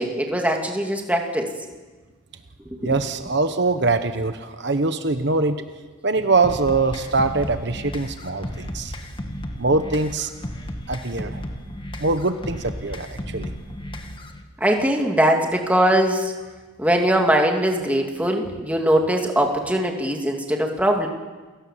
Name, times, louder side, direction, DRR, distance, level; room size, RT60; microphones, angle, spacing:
voice 1, 0.0-1.5 2.8-3.0 14.6-16.3 16.8-21.1, right 1 dB, 10° right, 2 dB, 2.4 m, -21 dB
voice 2, 2.8-5.6 6.0-8.9 9.6-10.3 10.9-11.4 12.0-13.5, right 3 dB, 60° right, 8 dB, 1.1 m, -23 dB
sound 1, 6.4-14.4, equal, 25° left, 1.8 m, -34 dB
29.0 x 17.5 x 7.4 m, 1.3 s
head